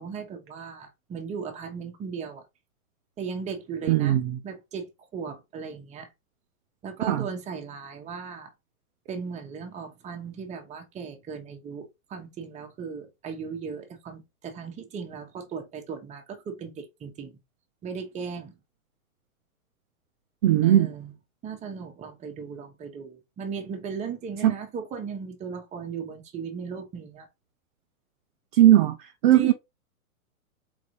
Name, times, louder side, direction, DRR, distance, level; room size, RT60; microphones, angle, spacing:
voice 1, 0.0-2.4 3.2-4.2 4.4-6.1 6.8-8.5 9.1-17.4 17.8-18.6 20.6-21.1 21.4-27.3 29.3-29.5, right 6 dB, 15° right, 1.0 m, -36 dB
voice 2, 3.9-4.4 7.1-7.3 20.4-20.9 24.4-24.5 28.5-29.0 29.2-29.5, right 12 dB, 35° right, 0.5 m, -18 dB
4.0 x 3.9 x 3.0 m
hypercardioid pair, 130°, 43 cm